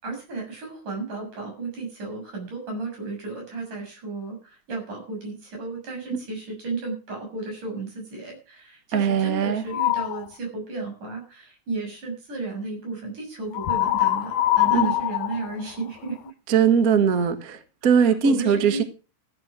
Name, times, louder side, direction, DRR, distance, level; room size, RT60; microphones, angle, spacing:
voice 1, 0.0-16.3 17.8-18.9, right 3 dB, 85° right, 8.6 m, -34 dB
voice 2, 8.9-9.6 14.7-14.9 16.5-17.6 17.8-18.8, right 7 dB, 40° right, 1.4 m, -20 dB
sound 1, 9.7-10.3 13.5-16.3, left 15 dB, 80° left, 2.3 m, -23 dB
15.0 x 9.6 x 6.1 m
omnidirectional pair, 3.6 m